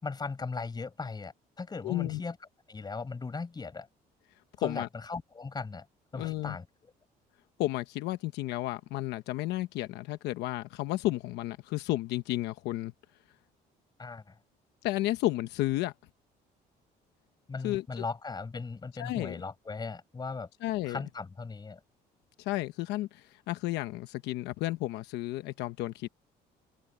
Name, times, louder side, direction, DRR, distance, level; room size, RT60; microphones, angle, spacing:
voice 1, 0.0-2.4 2.7-3.9 4.6-5.9 6.1-6.7 14.0-14.4 17.5-20.5 20.8-21.8, left 4 dB, 25° left, 5.7 m, -38 dB
voice 2, 1.8-2.2 4.6-4.9 6.1-6.6 7.6-12.9 14.8-15.9 17.6-18.0 19.0-19.4 20.6-21.0 22.4-26.1, left 16 dB, 90° left, 1.0 m, -32 dB
cardioid pair, 110°, 17 cm